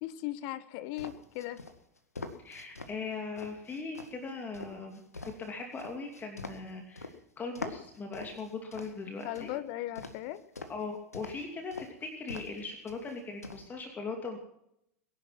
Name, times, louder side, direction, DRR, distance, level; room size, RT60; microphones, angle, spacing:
voice 1, 0.0-1.6 9.2-10.4, left 14 dB, 45° left, 14 dB, 1.3 m, -37 dB
sound 1, 1.0-2.9 3.4-7.1 7.5-9.5 9.9-10.8 11.1-11.4 11.7-11.9 12.3-12.6 12.9-13.6, left 3 dB, 85° left, 1.9 m, -44 dB
voice 2, 2.4-5.0 5.4-9.5 10.7-11.9 12.2-14.4, left 4 dB, 20° left, 3 dB, 2.7 m, -39 dB
22.0 x 11.0 x 5.9 m, 0.78 s
figure-of-eight pair, 90°, 8 cm